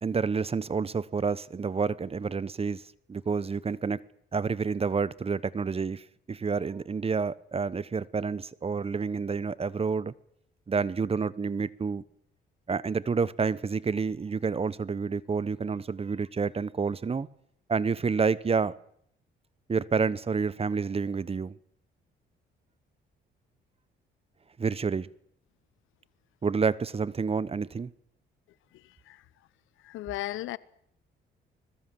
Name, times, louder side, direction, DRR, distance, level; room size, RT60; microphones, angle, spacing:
voice 1, 0.0-2.8 3.1-4.0 4.3-10.1 10.7-12.0 12.7-17.3 17.7-18.7 19.7-21.5 24.6-25.1 26.4-27.9, right 5 dB, 30° right, 1.0 m, -29 dB
voice 2, 28.7-29.2 29.8-30.6, left 16 dB, 90° left, 0.9 m, -36 dB
26.0 x 21.0 x 7.7 m
cardioid pair, 90°, 20 cm